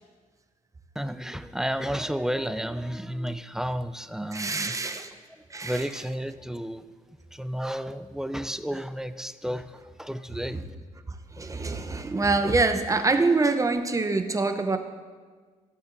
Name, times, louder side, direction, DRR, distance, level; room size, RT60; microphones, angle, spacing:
voice 1, 1.0-5.0 5.3-6.8 7.3-10.6, equal, 5° right, 12 dB, 0.4 m, -32 dB
voice 2, 4.3-5.1 5.5-5.8 11.3-14.8, right 3 dB, 20° right, 8 dB, 0.7 m, -25 dB
14.5 x 7.9 x 2.6 m, 1.5 s
cardioid pair, 85°, 15 cm